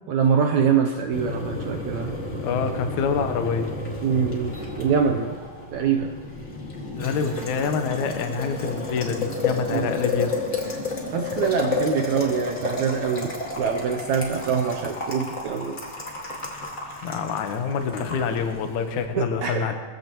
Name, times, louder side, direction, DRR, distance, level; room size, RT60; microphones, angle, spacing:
voice 1, 0.1-2.1 4.0-5.3 5.7-6.1 9.7-10.0 11.1-13.3 13.6-15.8 19.1-19.7, right 6 dB, 75° right, 3 dB, 1.7 m, -24 dB
Boiling, 1.1-19.0, left 3 dB, 30° left, 1.6 m, -31 dB
voice 2, 2.4-3.7 7.0-10.4 17.0-19.7, left 6 dB, 65° left, 6 dB, 2.2 m, -26 dB
22.5 x 15.5 x 3.0 m, 1.5 s
omnidirectional pair, 4.2 m